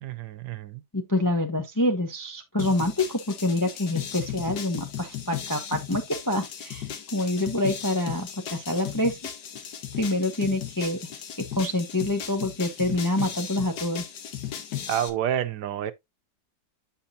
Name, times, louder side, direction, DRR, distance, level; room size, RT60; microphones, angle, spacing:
voice 1, 0.0-0.8 14.9-15.9, right 10 dB, 75° right, 1.2 m, -29 dB
voice 2, 0.9-6.9 7.1-9.2 10.0-11.0 11.5-14.0, left 1 dB, 20° left, 0.5 m, -26 dB
sound 1, 2.6-15.1, left 9 dB, 80° left, 1.6 m, -36 dB
7.8 x 5.7 x 2.7 m
omnidirectional pair, 1.8 m